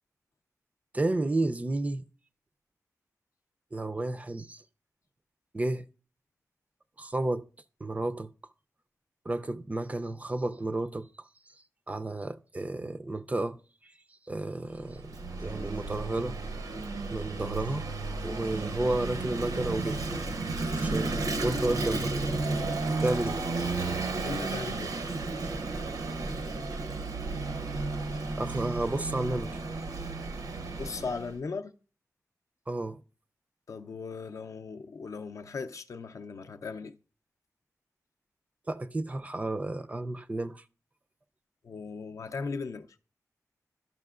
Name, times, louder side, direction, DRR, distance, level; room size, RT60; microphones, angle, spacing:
voice 1, 0.9-2.1 3.7-4.6 5.5-5.9 7.0-7.4 7.8-8.3 9.3-11.3 11.9-13.9 14.3-16.4 17.1-17.9 18.2-20.0 20.7-22.2 23.0-23.4 28.4-29.6 32.7-33.0 38.7-40.6, right 2 dB, 25° right, 0.4 m, -32 dB
Vehicle / Engine, 14.7-31.4, right 3 dB, 80° right, 0.7 m, -33 dB
voice 2, 24.2-24.9 25.5-25.7 30.6-31.7 33.7-37.0 41.6-42.9, left 4 dB, 60° left, 0.5 m, -38 dB
12.0 x 5.7 x 2.4 m
wide cardioid pair, 130°, 6 cm